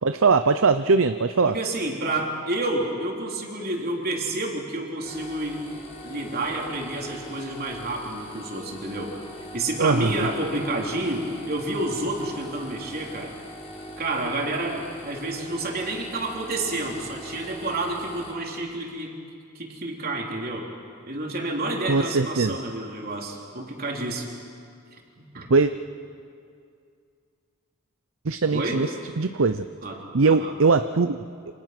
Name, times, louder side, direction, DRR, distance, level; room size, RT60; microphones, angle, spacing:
voice 1, 0.0-1.6 9.8-10.1 21.9-22.6 25.5-25.7 28.3-28.9 29.2-29.7 30.1-31.2, right 4 dB, 60° right, 10 dB, 0.6 m, -20 dB
voice 2, 1.5-5.7 6.0-9.2 9.5-13.3 14.0-19.1 19.6-20.7 21.1-24.3 25.3-25.5 28.5-28.8 29.8-30.5, right 2 dB, 45° right, 0 dB, 3.6 m, -29 dB
sound 1, 5.0-18.3, equal, 30° left, 4.8 m, -41 dB
28.5 x 27.0 x 6.0 m, 2.3 s
head